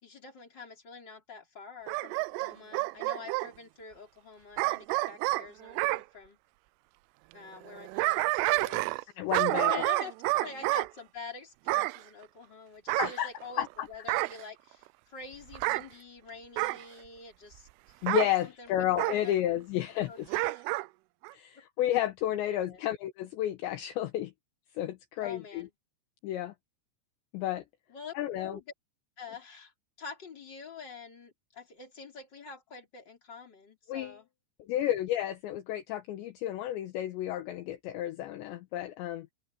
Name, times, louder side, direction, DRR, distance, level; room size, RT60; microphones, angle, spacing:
voice 1, 0.0-6.4 7.3-9.1 9.5-18.1 18.4-19.3 19.9-20.6 21.6-21.7 22.6-22.8 25.2-25.7 27.9-28.6 29.2-29.7 30.0-34.3, left 4 dB, 20° left, 4.7 m, -46 dB
Bark / Growling, 1.9-3.5 4.6-6.0 7.7-9.0 9.3-10.9 11.7-12.0 12.9-13.7 14.1-14.4 15.5-15.9 16.6-16.8 18.1-18.3 19.0-19.2 20.3-20.9 21.2-21.3, right 23 dB, 85° right, 3.0 m, -29 dB
voice 2, 9.2-9.8 13.0-13.3 13.6-13.9 18.0-20.3 21.3-24.3 24.8-25.7 26.2-26.5 27.3-27.6 28.2-28.6 33.9-34.2 34.6-39.3, left 12 dB, 75° left, 3.1 m, -31 dB
open air
omnidirectional pair, 5.7 m